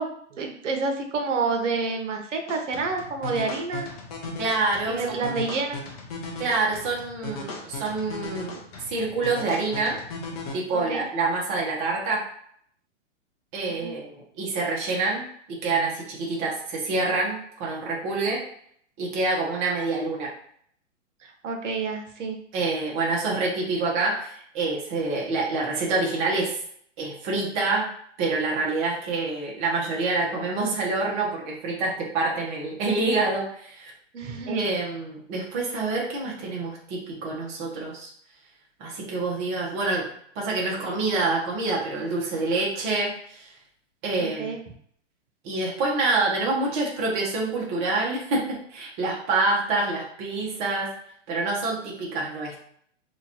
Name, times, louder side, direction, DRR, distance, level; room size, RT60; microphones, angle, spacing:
voice 1, 0.0-3.9 4.9-5.8 10.7-11.0 13.8-13.9 21.2-22.4 34.1-34.6 44.2-44.6, right 4 dB, 75° right, 4 dB, 0.9 m, -29 dB
sound 1, 2.5-10.5, left 3 dB, 30° left, 0.6 m, -37 dB
voice 2, 4.4-5.2 6.4-10.0 10.5-12.2 13.5-15.2 15.5-18.4 19.0-20.3 22.5-26.6 27.0-27.9 28.2-33.9 34.5-38.1 38.8-40.1 40.4-43.5 44.0-44.6 45.4-50.9 51.3-52.6, right 3 dB, 25° right, -3 dB, 0.7 m, -27 dB
2.9 x 2.3 x 4.2 m, 0.65 s
hypercardioid pair, 150°, 37 cm